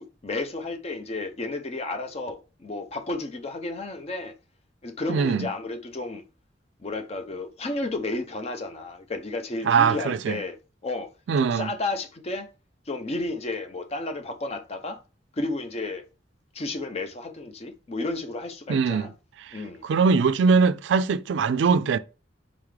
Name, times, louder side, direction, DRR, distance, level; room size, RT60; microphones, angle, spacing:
voice 1, 0.0-4.3 4.8-6.2 6.8-10.6 10.8-11.1 11.4-12.5 12.9-15.0 15.3-16.0 16.5-19.1 19.5-19.8, left 2 dB, 35° left, 0.5 m, -32 dB
voice 2, 5.1-5.5 9.7-10.4 11.3-11.7 18.7-19.1 19.4-19.6 19.8-22.0, right 5 dB, 75° right, 0.3 m, -21 dB
3.7 x 3.6 x 3.2 m
head